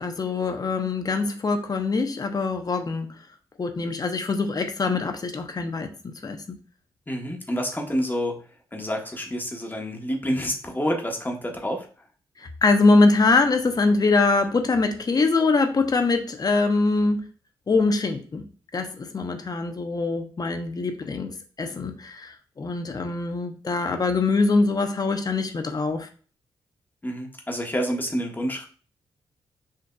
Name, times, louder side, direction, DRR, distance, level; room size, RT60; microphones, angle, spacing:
voice 1, 0.0-3.1 3.6-6.4 12.4-17.2 17.7-18.4 18.7-26.1, left 3 dB, 40° left, 6 dB, 0.8 m, -23 dB
voice 2, 7.1-8.4 8.7-11.9 27.0-28.7, equal, 20° left, 2 dB, 1.2 m, -28 dB
6.4 x 2.6 x 2.3 m, 0.40 s
supercardioid pair, 55°, 10 cm